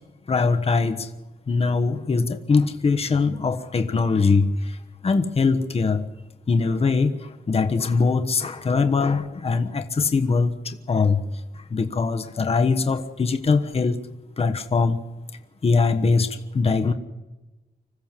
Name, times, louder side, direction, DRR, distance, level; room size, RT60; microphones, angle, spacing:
voice 1, 0.3-1.1 1.5-4.8 5.0-6.1 6.5-11.2 11.6-14.0 14.4-15.0 15.6-16.9, left 4 dB, 35° left, 6 dB, 1.2 m, -22 dB
25.5 x 15.5 x 7.5 m, 1.1 s
wide cardioid pair, 150°, 17 cm